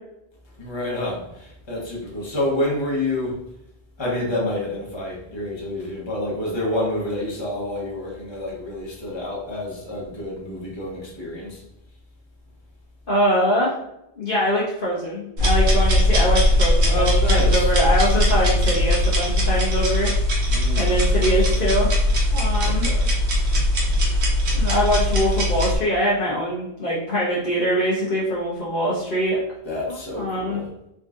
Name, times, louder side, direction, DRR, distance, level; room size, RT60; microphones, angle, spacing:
voice 1, 0.6-3.4 4.0-11.6 16.9-17.7 20.5-21.5 22.6-23.1 29.6-30.6, left 1 dB, 25° left, -5 dB, 1.2 m, -28 dB
voice 2, 13.1-13.8 14.2-20.1 20.8-21.9 22.3-22.9 24.5-29.4 30.2-30.6, equal, 55° left, -6 dB, 1.0 m, -23 dB
sound 1, 15.4-25.8, left 1 dB, 85° right, 1.3 m, -20 dB
3.8 x 3.6 x 2.5 m, 0.84 s
omnidirectional pair, 1.1 m